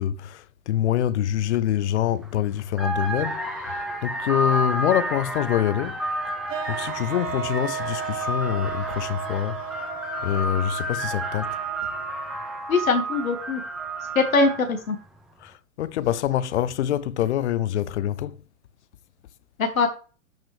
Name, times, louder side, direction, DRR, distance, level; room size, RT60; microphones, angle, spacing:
voice 1, 0.0-6.0 6.7-9.7 10.2-11.6 15.4-18.4, left 11 dB, 55° left, 0.8 m, -25 dB
sound 1, 2.1-2.3 2.7-14.8, right 1 dB, ahead, 1.7 m, -31 dB
sound 2, 6.5-12.6, right 9 dB, 65° right, 1.1 m, -34 dB
voice 2, 12.7-13.6 14.2-15.0 19.6-19.9, left 4 dB, 75° left, 2.0 m, -22 dB
12.0 x 5.7 x 3.3 m
figure-of-eight pair, 110°, 41 cm